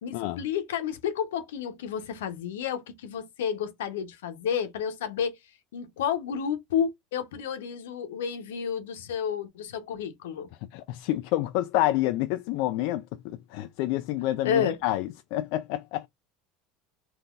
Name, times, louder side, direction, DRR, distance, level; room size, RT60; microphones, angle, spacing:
voice 1, 0.0-5.4 5.7-10.5 14.4-14.8, left 8 dB, 90° left, 0.8 m, -30 dB
voice 2, 10.7-16.1, left 15 dB, 70° left, 0.3 m, -28 dB
3.7 x 2.6 x 2.4 m
supercardioid pair, 100°, 0 cm